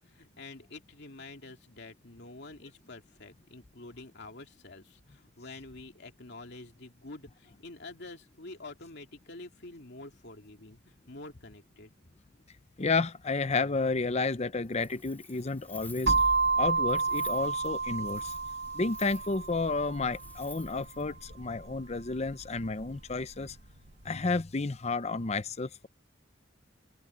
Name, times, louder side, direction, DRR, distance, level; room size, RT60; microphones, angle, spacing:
voice 1, 0.1-11.9, left 2 dB, 60° left, 2.6 m, -47 dB
voice 2, 12.8-16.2 16.6-18.3 18.7-23.6 24.0-25.9, left 3 dB, 35° left, 0.7 m, -31 dB
Wind, 14.6-21.1, left 3 dB, 10° left, 3.0 m, -52 dB
sound 1, 16.1-23.9, right 4 dB, 60° right, 2.3 m, -31 dB
head